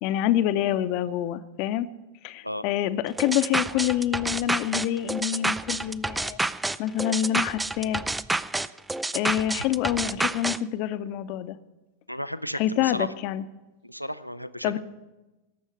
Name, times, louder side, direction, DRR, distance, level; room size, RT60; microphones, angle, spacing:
voice 1, 0.0-1.9 2.2-6.4 6.8-8.0 9.1-11.6 12.5-13.4 14.6-14.8, left 12 dB, 45° left, 13 dB, 0.8 m, -26 dB
sound 1, 3.2-10.6, right 2 dB, 5° right, 0.4 m, -28 dB
voice 2, 12.1-13.1 13.8-14.7, equal, 90° left, 14 dB, 0.5 m, -33 dB
18.5 x 7.2 x 7.6 m, 1.1 s
figure-of-eight pair, 90°, 0 cm